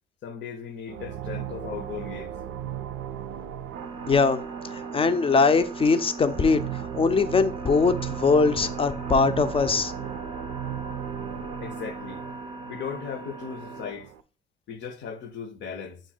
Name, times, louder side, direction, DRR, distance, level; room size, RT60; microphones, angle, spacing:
voice 1, 0.2-2.4 11.6-12.2 12.7-14.1 14.7-16.0, left 7 dB, 65° left, 0.7 m, -37 dB
sound 1, 0.9-14.2, right 10 dB, 90° right, 0.4 m, -37 dB
sound 2, 3.7-13.9, right 2 dB, 25° right, 0.6 m, -40 dB
voice 2, 4.1-4.4 4.9-6.6 6.9-9.9, left 4 dB, 30° left, 0.4 m, -21 dB
6.1 x 2.3 x 3.8 m
cardioid pair, 90°, 20 cm